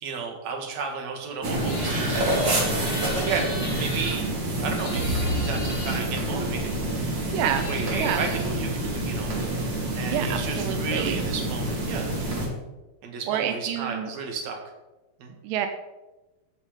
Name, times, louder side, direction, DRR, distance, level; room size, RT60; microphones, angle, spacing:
voice 1, 0.0-2.5 3.1-6.7 7.4-9.3 9.9-12.1 13.0-14.6 15.2-15.3, right 5 dB, 55° right, 2 dB, 2.5 m, -33 dB
sound 1, 1.4-12.5, right 1 dB, 35° right, 2.3 m, -27 dB
sound 2, 1.6-4.2 4.8-6.0 7.0-7.1 7.4-8.5, left 3 dB, 70° left, 4.8 m, -38 dB
voice 2, 7.3-7.7 8.0-8.2 10.1-11.2 13.3-14.1 15.4-15.7, right 10 dB, 85° right, 7 dB, 2.0 m, -28 dB
15.5 x 5.7 x 5.1 m, 1.1 s
omnidirectional pair, 4.6 m